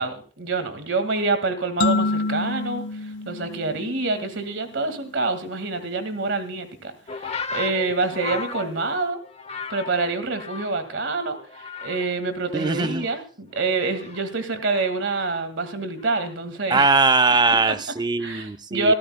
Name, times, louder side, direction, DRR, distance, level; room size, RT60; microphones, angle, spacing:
voice 1, 0.0-2.8 3.3-6.9 7.2-9.2 9.7-16.9 18.2-18.9, right 3 dB, 70° right, 1.9 m, -26 dB
sound 1, 1.8-4.4, left 2 dB, 70° left, 1.0 m, -27 dB
sound 2, 7.1-11.0 11.3-12.2 12.5-15.2 16.0-16.4, left 5 dB, 35° left, 0.8 m, -36 dB
voice 2, 12.5-13.1 16.7-18.9, right 3 dB, 20° right, 0.5 m, -20 dB
24.0 x 13.5 x 2.2 m
head